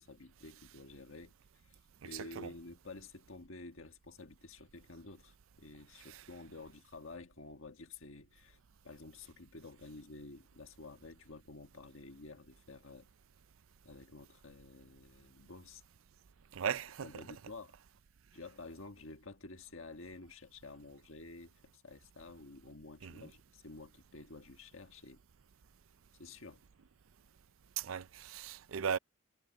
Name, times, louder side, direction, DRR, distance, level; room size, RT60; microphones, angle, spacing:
voice 1, 0.0-13.1 13.8-15.8 17.0-17.7 18.3-25.2 26.2-26.6, left 3 dB, 65° left, 1.7 m, -51 dB
voice 2, 2.1-2.5 6.1-6.2 16.5-17.2 23.0-23.3 27.8-29.0, right 7 dB, 70° right, 0.5 m, -38 dB
head